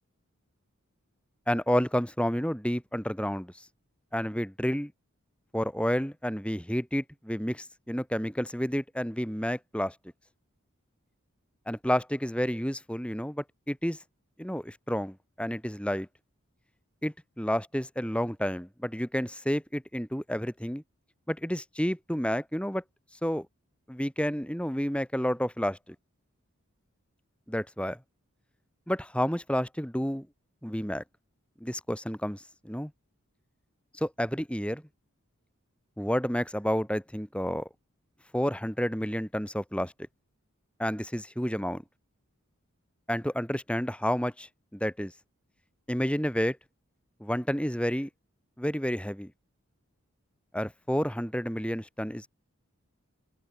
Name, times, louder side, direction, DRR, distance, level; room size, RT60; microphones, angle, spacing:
voice 1, 1.5-3.5 4.1-4.9 5.5-9.9 11.7-14.0 14.4-16.1 17.0-20.8 21.3-22.8 23.2-23.5 23.9-25.8 27.5-28.0 28.9-30.3 30.6-31.0 31.6-32.9 34.0-34.8 36.0-37.7 38.3-39.9 40.8-41.8 43.1-45.1 45.9-46.6 47.2-48.1 48.6-49.3 50.5-52.3, equal, 5° left, 4.0 m, -30 dB
head